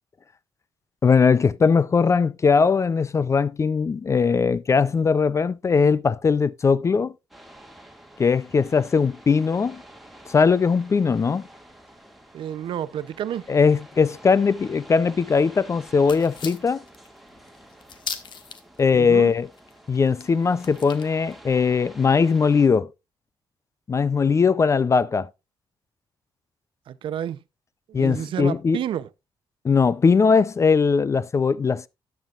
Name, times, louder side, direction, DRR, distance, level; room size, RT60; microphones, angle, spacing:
voice 1, 1.0-7.1 8.2-9.8 10.3-11.4 13.5-16.8 18.8-19.5 19.9-22.9 23.9-25.3 27.9-28.8 29.6-31.9, left 5 dB, 35° left, 0.5 m, -20 dB
sound 1, 7.3-22.7, right 1 dB, ahead, 2.1 m, -48 dB
voice 2, 12.3-13.5 18.9-19.3 26.9-27.4 27.9-29.1, right 10 dB, 75° right, 0.7 m, -30 dB
sound 2, 16.0-18.8 19.1-19.2 19.5-21.3, left 7 dB, 65° left, 1.4 m, -38 dB
13.0 x 9.5 x 2.4 m
cardioid pair, 95°, 9 cm